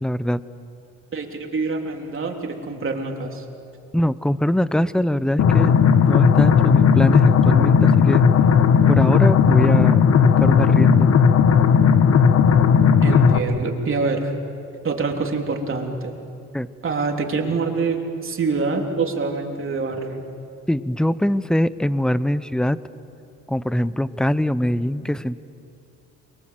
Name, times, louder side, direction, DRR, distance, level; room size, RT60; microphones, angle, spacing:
voice 1, 0.0-0.4 3.9-8.2 8.9-11.1 16.5-16.7 20.7-22.8 23.5-25.4, left 1 dB, ahead, 15 dB, 0.8 m, -22 dB
voice 2, 1.1-3.5 13.0-14.3 14.8-16.2 16.8-20.2, right 4 dB, 45° right, 2 dB, 3.5 m, -25 dB
sound 1, 5.4-13.4, left 6 dB, 55° left, 1.5 m, -15 dB
29.0 x 23.5 x 7.7 m, 2.6 s
cardioid pair, 90°, 30 cm